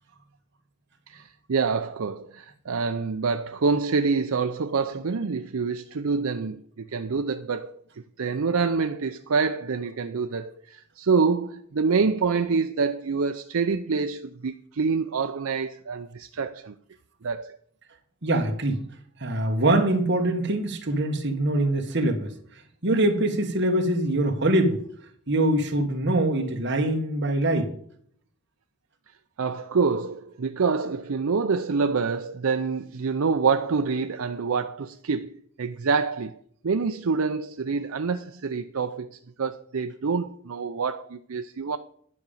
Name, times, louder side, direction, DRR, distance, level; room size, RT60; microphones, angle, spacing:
voice 1, 1.1-16.7 17.2-17.6 29.4-36.4 36.6-41.8, right 5 dB, 80° right, 0.6 m, -26 dB
voice 2, 18.2-18.8 19.2-22.3 22.8-24.8 25.3-27.7, right 1 dB, 55° right, 1.6 m, -23 dB
11.0 x 5.2 x 7.1 m
head